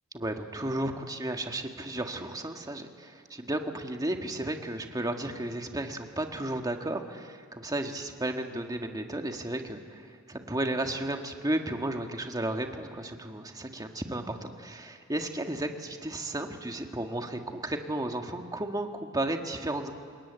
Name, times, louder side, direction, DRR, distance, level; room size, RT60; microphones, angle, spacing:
voice 1, 0.1-19.9, right 1 dB, 20° right, 4 dB, 1.7 m, -33 dB
27.5 x 22.0 x 8.9 m, 2.2 s
head